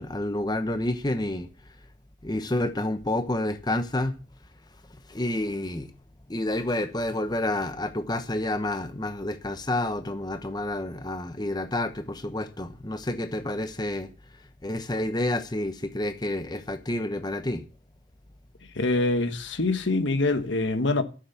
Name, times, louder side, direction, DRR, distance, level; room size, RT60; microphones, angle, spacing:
voice 1, 0.0-1.5 2.2-4.1 5.1-5.9 6.3-14.1 14.6-17.6, left 1 dB, 20° left, 0.9 m, -29 dB
voice 2, 18.7-21.0, left 2 dB, 65° left, 1.4 m, -24 dB
13.0 x 7.0 x 7.0 m
head